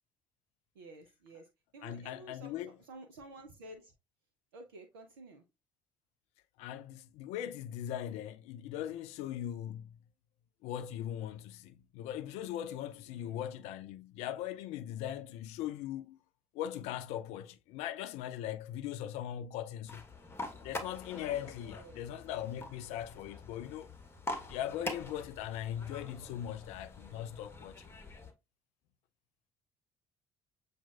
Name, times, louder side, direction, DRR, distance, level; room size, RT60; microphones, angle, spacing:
voice 1, 0.8-1.5 1.7-2.6 2.9-3.9 4.5-5.4 13.1-13.5 21.7-22.0, right 2 dB, 80° right, 0.6 m, -51 dB
voice 2, 1.8-2.8 6.6-10.0 10.6-16.2 16.5-20.0 20.6-23.9 24.5-27.8, left 11 dB, 65° left, 0.4 m, -40 dB
sound 1, 19.9-28.3, left 2 dB, 20° left, 1.2 m, -45 dB
7.2 x 2.4 x 2.3 m
hypercardioid pair, 55°, 12 cm